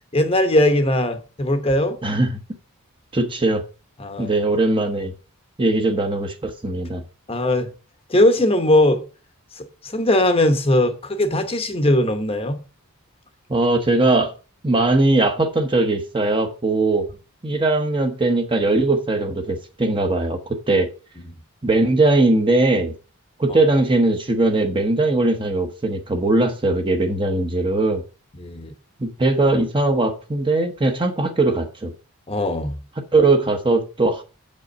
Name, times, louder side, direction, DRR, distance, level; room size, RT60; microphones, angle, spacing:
voice 1, 0.1-2.0 4.0-4.3 7.3-7.7 8.1-9.0 9.5-12.6 28.4-28.7 32.3-32.8, left 1 dB, 25° left, 0.9 m, -19 dB
voice 2, 2.0-2.3 3.1-3.6 4.2-5.1 5.6-7.0 13.5-14.3 14.6-17.1 17.4-20.9 21.6-22.9 23.4-28.0 29.0-31.9 33.0-34.2, right 2 dB, 20° right, 0.9 m, -20 dB
7.6 x 5.3 x 5.2 m
head